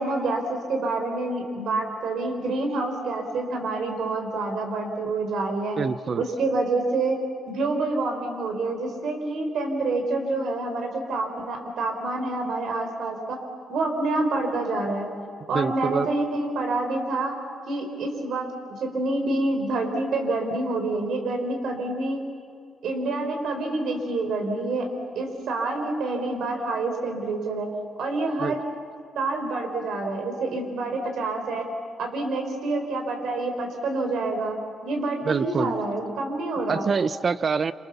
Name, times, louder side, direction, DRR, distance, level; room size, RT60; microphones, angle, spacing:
voice 1, 0.0-5.8 6.2-7.2 7.5-13.4 13.7-15.1 15.5-17.3 17.7-18.5 18.8-22.2 22.8-24.9 25.1-27.7 28.0-28.6 29.1-31.7 32.0-34.5 34.8-36.9, right 2 dB, 70° right, 4 dB, 4.5 m, -27 dB
voice 2, 5.8-6.2 15.5-16.1 28.4-28.5 35.2-35.8 36.7-37.7, right 5 dB, 35° right, 15 dB, 0.7 m, -25 dB
27.5 x 27.0 x 7.1 m, 2.3 s
cardioid pair, 155°, 0 cm